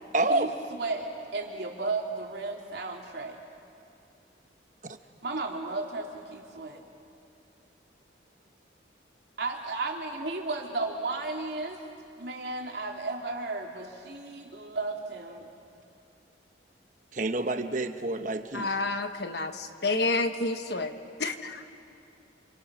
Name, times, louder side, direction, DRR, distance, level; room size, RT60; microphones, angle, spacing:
voice 1, 0.1-0.5 4.8-5.0 17.1-18.7, right 2 dB, 45° right, 8 dB, 1.1 m, -28 dB
voice 2, 0.8-3.4 5.2-6.8 9.4-11.8 12.2-15.5, right 3 dB, 65° right, 0 dB, 3.0 m, -34 dB
voice 3, 18.5-21.6, left 3 dB, 60° left, 7 dB, 1.3 m, -30 dB
28.5 x 27.5 x 6.3 m, 2.6 s
head